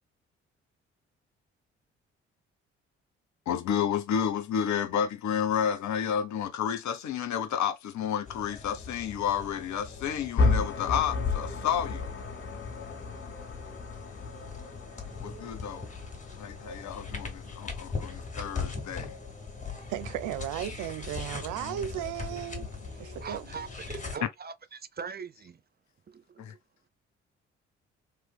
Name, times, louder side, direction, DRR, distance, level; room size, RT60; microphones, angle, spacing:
voice 1, 3.5-12.1 15.2-15.9 16.4-19.1 21.6-21.8 22.6-22.7 26.4-26.5, left 8 dB, 60° left, 0.9 m, -31 dB
sound 1, 8.3-24.2, left 4 dB, 20° left, 2.1 m, -41 dB
sound 2, 10.4-18.4, left 3 dB, 40° left, 2.0 m, -33 dB
voice 2, 19.9-22.7 23.0-23.5, right 12 dB, 70° right, 0.5 m, -35 dB
voice 3, 23.2-25.6 26.1-26.2, right 6 dB, 30° right, 0.7 m, -41 dB
3.4 x 3.4 x 2.2 m
hypercardioid pair, 45°, 32 cm